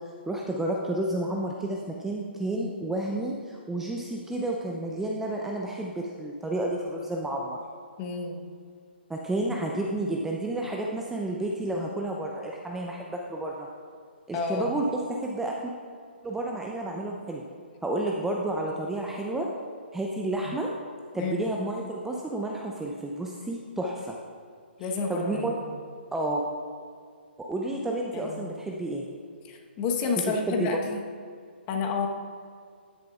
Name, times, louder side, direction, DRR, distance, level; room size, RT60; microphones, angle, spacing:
voice 1, 0.3-7.6 9.1-13.7 14.3-15.7 16.2-17.4 17.8-19.5 19.9-20.7 21.1-24.1 25.1-25.6 26.1-26.4 27.4-29.1 30.3-30.7, right 1 dB, 5° right, -1 dB, 0.5 m, -31 dB
voice 2, 8.0-8.4 14.3-14.7 21.2-21.5 24.8-25.6 28.1-28.4 29.4-31.0 31.7-32.1, left 4 dB, 25° left, 2 dB, 1.1 m, -30 dB
11.0 x 10.0 x 2.4 m, 2.1 s
hypercardioid pair, 140°, 6 cm